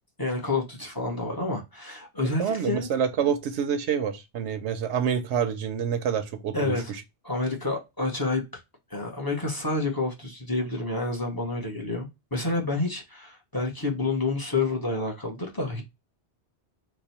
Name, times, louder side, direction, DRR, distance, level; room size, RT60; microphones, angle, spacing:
voice 1, 0.2-2.9 6.5-6.9 7.2-8.4 8.9-15.8, left 3 dB, 20° left, 0.9 m, -29 dB
voice 2, 2.4-7.0, right 7 dB, 80° right, 0.9 m, -27 dB
3.1 x 2.2 x 4.0 m
omnidirectional pair, 1.1 m